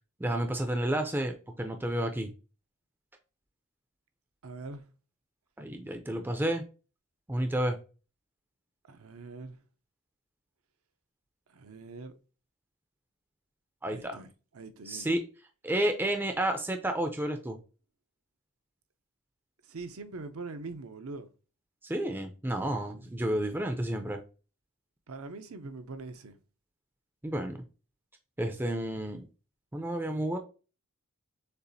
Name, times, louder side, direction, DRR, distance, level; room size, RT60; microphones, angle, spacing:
voice 1, 0.2-2.3 5.6-6.6 7.3-7.8 13.8-14.2 14.9-15.2 15.6-17.6 21.8-24.2 27.2-27.6 28.4-29.3 29.7-30.4, right 1 dB, 10° right, 0.4 m, -31 dB
voice 2, 4.4-4.8 8.9-9.6 11.5-12.1 13.9-14.3 14.5-15.1 19.7-21.3 25.1-26.3, right 3 dB, 70° right, 0.6 m, -42 dB
6.7 x 2.5 x 2.7 m
head